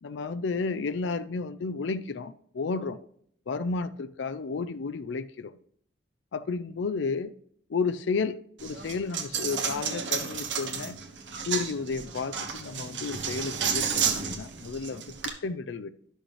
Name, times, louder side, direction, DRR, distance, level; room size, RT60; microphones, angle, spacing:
voice 1, 0.0-3.0 3.5-5.5 6.3-7.3 7.7-11.0 11.4-15.9, left 4 dB, 80° left, 0.5 m, -32 dB
Coin (dropping), 8.6-15.3, right 6 dB, 80° right, 1.2 m, -32 dB
11.0 x 6.4 x 3.2 m
head